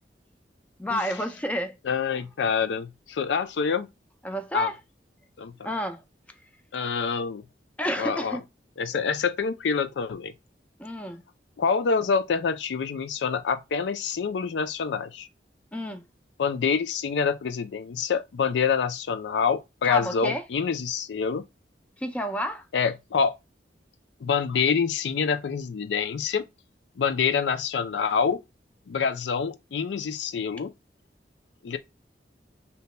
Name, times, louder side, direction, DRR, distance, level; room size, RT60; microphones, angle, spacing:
voice 1, 0.8-1.8 2.1-2.2 4.2-4.8 5.6-6.0 7.8-8.4 10.8-11.2 15.7-16.0 19.8-20.4 22.0-22.6, equal, 10° left, 0.3 m, -30 dB
voice 2, 1.8-3.9 4.5-4.7 5.4-5.5 6.7-7.4 8.0-8.4 8.8-10.3 11.6-15.3 16.4-21.4 22.7-23.3 24.2-26.5 27.0-28.4 28.9-30.7 31.6-31.8, left 6 dB, 85° left, 0.4 m, -26 dB
2.8 x 2.2 x 4.0 m
head